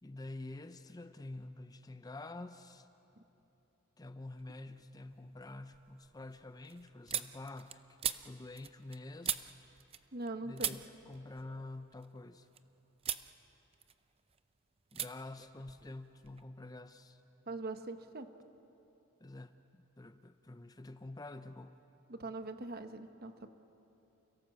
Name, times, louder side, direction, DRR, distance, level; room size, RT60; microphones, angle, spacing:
voice 1, 0.0-2.9 4.0-9.5 10.4-12.5 14.9-17.2 19.2-21.8, left 2 dB, 20° left, 10 dB, 0.6 m, -48 dB
sound 1, 4.3-4.9 5.3-10.3 10.6-12.6 13.0-13.3 13.7-14.4 14.9-15.1 15.4-16.4, right 10 dB, 25° right, 0.6 m, -41 dB
voice 2, 10.1-10.8 17.5-18.3 22.1-23.5, right 2 dB, 45° right, 8 dB, 1.1 m, -42 dB
29.5 x 17.0 x 7.6 m, 3.0 s
head